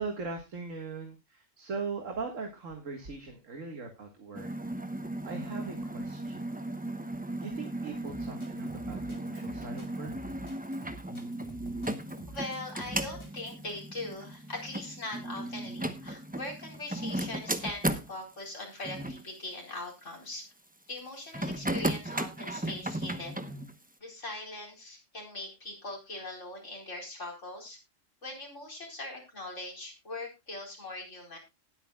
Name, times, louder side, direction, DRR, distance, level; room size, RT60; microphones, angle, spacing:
voice 1, 0.0-4.5 5.2-6.5 7.4-10.1, right 4 dB, 80° right, 4 dB, 2.2 m, -40 dB
sound 1, 4.3-18.1 18.8-19.2 21.3-23.7, right 1 dB, 10° right, 0.8 m, -36 dB
Drum kit, 8.1-13.6, right 1 dB, 20° left, 2.8 m, -49 dB
voice 2, 12.3-20.4 20.9-23.5 24.0-27.8 28.2-31.4, left 2 dB, 70° left, 1 dB, 4.8 m, -41 dB
19.5 x 8.7 x 2.3 m, 0.23 s
omnidirectional pair, 1.3 m